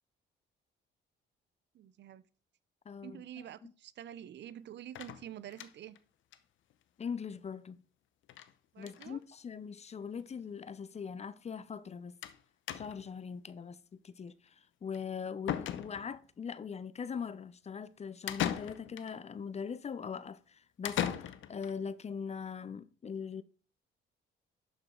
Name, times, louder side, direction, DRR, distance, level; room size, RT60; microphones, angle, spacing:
voice 1, 1.7-2.2 3.0-6.0 8.7-9.2, right 11 dB, 60° right, 0.5 m, -47 dB
voice 2, 2.9-3.2 3.6-3.7 7.0-7.8 8.8-12.2 12.7-23.4, left 6 dB, 35° left, 0.6 m, -41 dB
sound 1, 5.0-6.0 6.3-6.4 6.7-6.8 7.0-7.1 8.3-8.5 8.8-9.1 10.0-10.1 10.4-10.5 12.2-12.4 12.7-13.2 14.9-15.0 15.5-16.3 18.3-19.1 20.8-21.7, left 10 dB, 75° left, 0.7 m, -37 dB
11.5 x 5.0 x 3.8 m
cardioid pair, 90°, 20 cm